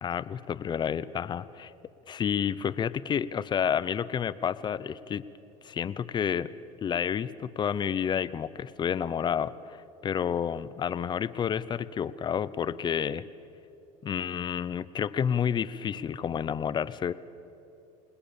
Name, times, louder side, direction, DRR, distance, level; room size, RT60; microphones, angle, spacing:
voice 1, 0.0-1.7 2.1-5.2 5.6-6.5 6.8-9.8 10.0-13.2 14.0-17.1, left 8 dB, 25° left, 16 dB, 0.7 m, -30 dB
28.0 x 20.0 x 7.1 m, 2.9 s
supercardioid pair, 115°, 17 cm